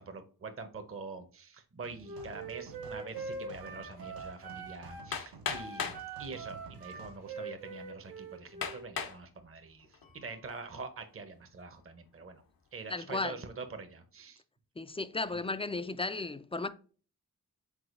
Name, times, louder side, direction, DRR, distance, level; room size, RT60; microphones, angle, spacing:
voice 1, 0.0-12.4 12.7-14.4 15.3-15.5, right 4 dB, 35° right, 0.8 m, -45 dB
sound 1, 1.8-7.2, right 3 dB, 70° right, 0.8 m, -53 dB
Wind instrument woodwind instrument, 2.0-5.1 5.5-8.9, right 4 dB, 90° right, 1.3 m, -43 dB
Hammer, 5.1-6.0 7.0-7.1 7.6-7.7 8.6-9.2 9.8-10.2, left 6 dB, 65° left, 0.7 m, -36 dB
voice 2, 12.9-13.4 14.8-16.7, left 3 dB, 15° left, 0.3 m, -34 dB
4.8 x 3.8 x 2.5 m
cardioid pair, 45°, 37 cm